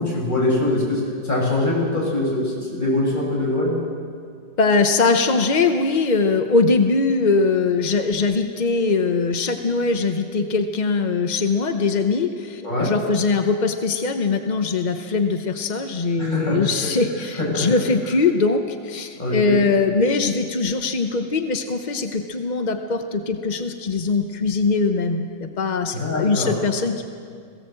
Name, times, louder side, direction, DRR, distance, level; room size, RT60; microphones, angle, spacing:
voice 1, 0.0-3.7 12.6-12.9 16.2-16.6 17.4-17.7 19.1-19.6 25.9-26.5, left 2 dB, 25° left, -4 dB, 6.9 m, -23 dB
voice 2, 4.6-27.0, left 4 dB, 45° left, 6 dB, 0.6 m, -21 dB
21.0 x 16.5 x 7.7 m, 2.2 s
omnidirectional pair, 2.0 m